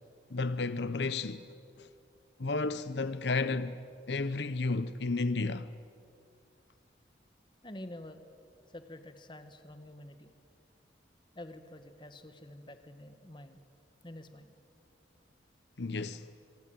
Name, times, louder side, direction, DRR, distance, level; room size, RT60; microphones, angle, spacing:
voice 1, 0.3-1.4 1.8-1.9 2.4-5.7 15.8-16.2, left 3 dB, 75° left, 0.8 m, -32 dB
voice 2, 7.6-8.2 8.7-10.3 11.4-13.6 14.0-14.5, left 1 dB, 25° left, 1.6 m, -48 dB
26.5 x 25.0 x 9.0 m
head